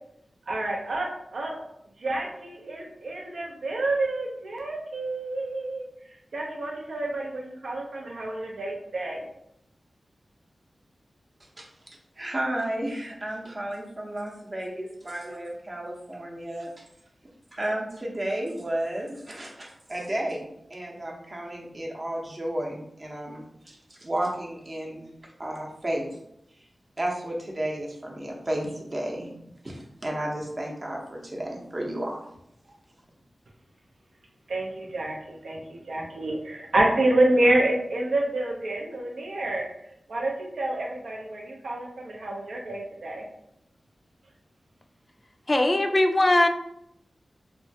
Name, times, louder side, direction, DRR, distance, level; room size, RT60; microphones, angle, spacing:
voice 1, 0.5-1.6 2.0-5.9 6.3-9.2 34.5-39.7 40.1-43.2, right 1 dB, 85° right, -1 dB, 0.6 m, -28 dB
voice 2, 12.2-16.8 17.5-26.1 27.0-29.3 29.6-32.2, right 1 dB, 40° right, -1 dB, 0.7 m, -32 dB
voice 3, 45.5-46.5, left 1 dB, 30° left, 6 dB, 0.3 m, -20 dB
2.9 x 2.2 x 2.7 m, 0.78 s
wide cardioid pair, 60°, 0 cm